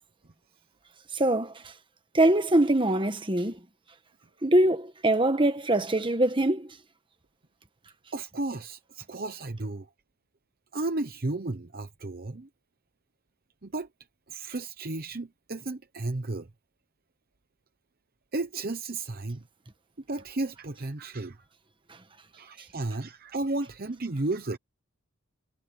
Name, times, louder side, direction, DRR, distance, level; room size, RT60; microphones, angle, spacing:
voice 1, 1.1-1.7 2.1-3.6 4.4-6.7, right 1 dB, 20° right, 1.4 m, -23 dB
voice 2, 8.1-9.9 10.7-12.5 13.6-13.9 14.3-16.5 18.3-19.4 20.1-21.4 22.4-24.6, right 2 dB, 40° right, 0.9 m, -33 dB
head